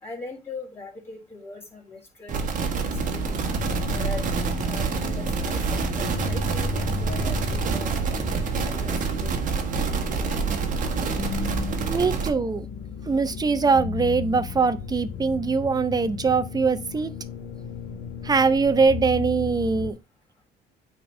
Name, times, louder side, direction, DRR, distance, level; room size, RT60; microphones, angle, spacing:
voice 1, 0.0-3.3 3.9-4.2 4.6-5.8 6.2-9.4, left 3 dB, 15° left, 3.7 m, -40 dB
sound 1, 2.3-12.3, right 5 dB, 50° right, 1.5 m, -27 dB
sound 2, 2.8-19.9, left 5 dB, 75° left, 1.2 m, -34 dB
voice 2, 11.9-12.7 13.1-17.1 18.2-19.9, right 4 dB, 25° right, 0.7 m, -22 dB
8.9 x 4.4 x 3.3 m
cardioid pair, 110°, 17 cm